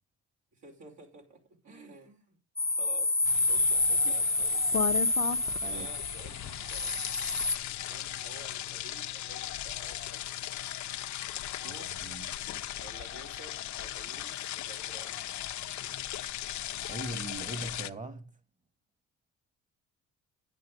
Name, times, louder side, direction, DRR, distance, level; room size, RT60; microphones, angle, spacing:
voice 1, 0.5-2.4 2.7-4.9 5.6-7.0 7.8-10.3 11.6-11.9 12.8-15.3, right 3 dB, 65° right, 5.8 m, -52 dB
sound 1, 2.6-7.6, left 2 dB, 10° left, 0.6 m, -28 dB
sound 2, 3.3-17.9, left 12 dB, 70° left, 0.9 m, -37 dB
voice 2, 12.0-12.5 16.9-18.4, right 2 dB, 25° right, 2.3 m, -40 dB
11.0 x 9.5 x 5.2 m
cardioid pair, 90°, 30 cm